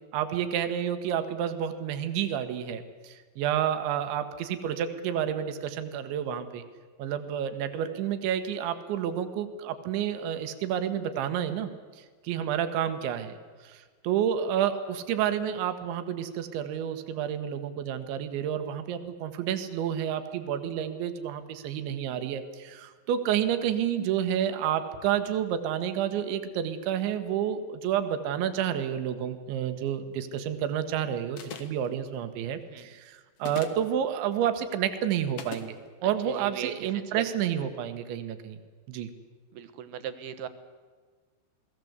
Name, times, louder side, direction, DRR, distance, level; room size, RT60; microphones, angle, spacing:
voice 1, 0.1-6.6 7.0-11.7 12.2-13.4 13.6-35.8 36.0-38.6 38.9-39.1, right 9 dB, 85° right, 8 dB, 3.8 m, -30 dB
sound 1, 31.4-31.9 33.4-33.9 35.4-35.7, left 6 dB, 60° left, 1.6 m, -39 dB
voice 2, 36.0-37.3 39.5-40.5, right 9 dB, 65° right, 10 dB, 3.0 m, -38 dB
29.0 x 19.5 x 8.1 m, 1.5 s
omnidirectional pair, 5.2 m